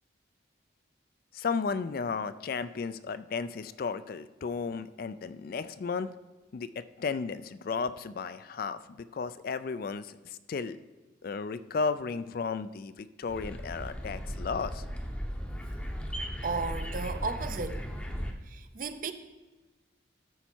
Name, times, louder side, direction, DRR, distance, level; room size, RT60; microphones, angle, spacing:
voice 1, 1.3-6.1 6.5-10.8 11.2-14.8, left 5 dB, 50° left, 0.3 m, -34 dB
sound 1, 13.3-18.3, equal, 5° left, 0.7 m, -36 dB
voice 2, 16.4-17.9 18.5-19.1, right 4 dB, 45° right, 0.5 m, -34 dB
12.5 x 5.5 x 4.5 m
head